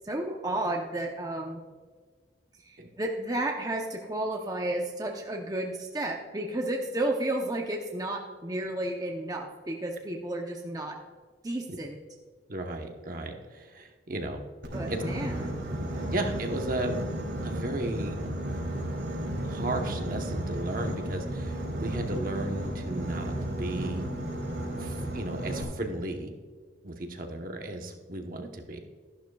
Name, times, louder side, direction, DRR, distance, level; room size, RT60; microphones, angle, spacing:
voice 1, 0.0-1.6 2.6-11.0 11.4-12.0 14.7-15.7, right 1 dB, 20° right, 1 dB, 0.7 m, -32 dB
voice 2, 12.5-14.4 14.9-15.0 16.1-17.1 17.4-18.3 19.4-24.1 24.8-26.3 26.8-28.8, right 1 dB, 50° right, 4 dB, 1.0 m, -34 dB
Boat Water vehicle, 14.6-25.6, right 1 dB, 80° right, 3.0 m, -33 dB
13.0 x 11.5 x 2.3 m, 1.5 s
head